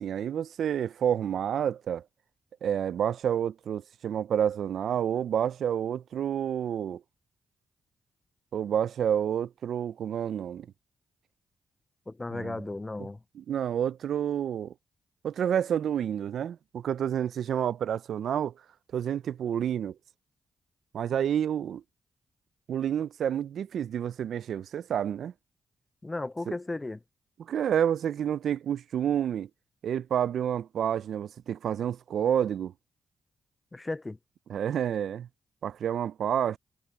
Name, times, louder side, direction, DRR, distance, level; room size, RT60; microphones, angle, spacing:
voice 1, 0.0-2.0 2.6-7.0 8.5-10.7 12.3-12.6 13.4-14.7 15.2-18.5 18.9-19.9 20.9-21.8 22.7-25.3 26.5-26.6 27.4-29.5 29.8-32.7 34.5-35.3 35.6-36.6, right 9 dB, 75° right, 0.4 m, -29 dB
voice 2, 12.1-13.2 26.0-27.0 33.7-34.2, left 2 dB, 25° left, 0.3 m, -35 dB
supercardioid pair, 50°, 0 cm